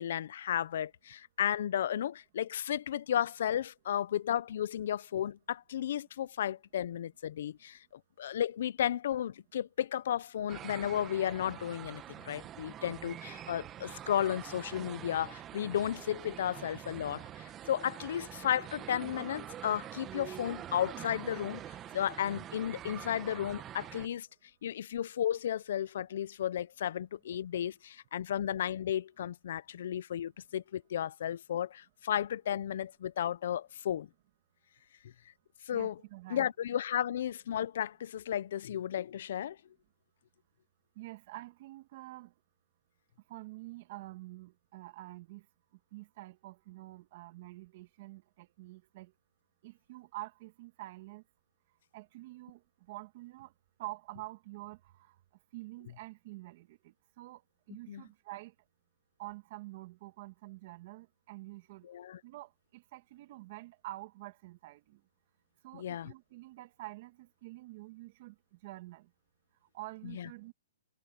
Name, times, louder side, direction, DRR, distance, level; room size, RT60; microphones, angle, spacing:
voice 1, 0.0-7.8 8.2-21.6 21.9-24.3 24.6-34.1 35.7-36.0 36.3-39.6 57.9-58.0 61.8-62.2 65.7-66.1 70.0-70.3, left 10 dB, 60° left, 0.6 m, -34 dB
sound 1, 10.5-24.1, right 11 dB, 20° right, 1.3 m, -45 dB
voice 2, 35.7-36.5 41.0-42.3 43.3-45.5 45.9-49.1 49.6-51.2 51.9-52.6 52.9-53.5 53.8-55.2 55.5-57.4 57.7-58.5 59.2-61.9 62.2-65.0 65.6-69.1 69.7-70.5, right 19 dB, 40° right, 2.1 m, -47 dB
hypercardioid pair, 160°, 0 cm